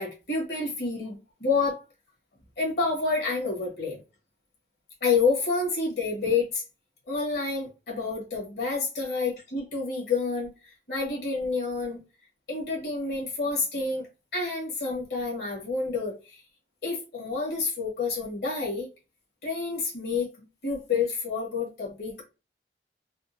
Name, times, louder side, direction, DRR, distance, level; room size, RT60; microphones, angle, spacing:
voice 1, 0.0-1.8 2.6-4.0 5.0-6.6 7.1-12.0 12.5-14.1 14.3-16.4 16.8-18.9 19.4-20.3 20.6-22.2, left 4 dB, 60° left, 1.3 m, -28 dB
3.6 x 2.3 x 2.6 m
head